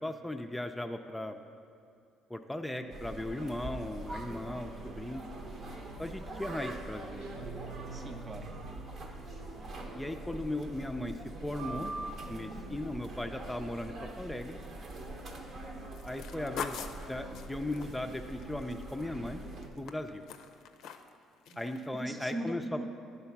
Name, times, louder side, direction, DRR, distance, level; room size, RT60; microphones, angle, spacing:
voice 1, 0.0-1.4 2.3-5.2 6.0-7.5 9.9-11.9 12.3-14.6 16.1-16.8 17.1-19.4 19.8-20.2 21.6-22.8, left 1 dB, 10° left, 5 dB, 0.4 m, -37 dB
sound 1, 2.9-19.7, right 2 dB, 60° right, 1.0 m, -43 dB
sound 2, 7.2-9.8, right 6 dB, 90° right, 0.6 m, -49 dB
voice 2, 7.9-8.5 21.5-21.6 21.9-22.9, right 1 dB, 40° right, 5 dB, 0.7 m, -39 dB
sound 3, 15.9-19.3 19.6-21.2 21.5-21.9 22.2-22.3, left 7 dB, 75° left, 0.4 m, -43 dB
9.5 x 4.0 x 5.8 m, 2.4 s
supercardioid pair, 60°, 0 cm